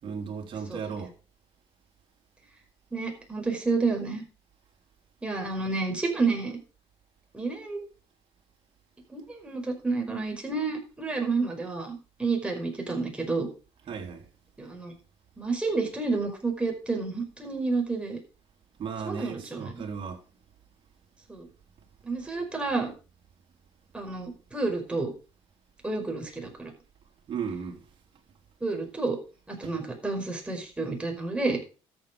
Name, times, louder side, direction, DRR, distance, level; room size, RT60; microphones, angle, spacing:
voice 1, 0.0-1.1 13.9-14.3 18.8-20.2 27.3-27.9 29.6-29.7, right 6 dB, 45° right, 3.8 m, -35 dB
voice 2, 2.9-4.2 5.2-6.6 7.3-7.8 9.1-13.5 14.6-14.9 15.4-18.2 19.0-19.8 21.3-21.5 22.0-22.9 23.9-25.1 25.8-26.7 28.6-29.2 29.5-31.6, right 3 dB, 10° right, 5.1 m, -30 dB
13.0 x 7.9 x 5.2 m
cardioid pair, 105°, 11 cm